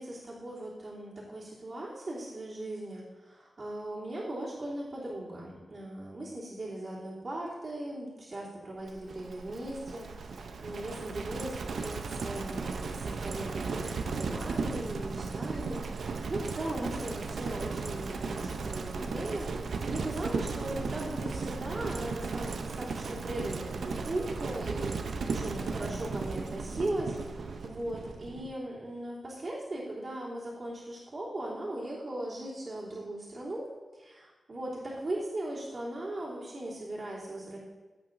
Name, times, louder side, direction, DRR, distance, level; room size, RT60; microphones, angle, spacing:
voice 1, 0.0-37.6, right 1 dB, 40° right, -7 dB, 3.0 m, -38 dB
Livestock farm animals working animals, 8.9-28.5, right 4 dB, 75° right, 0.6 m, -36 dB
15.5 x 8.9 x 2.6 m, 1.3 s
wide cardioid pair, 155°, 0 cm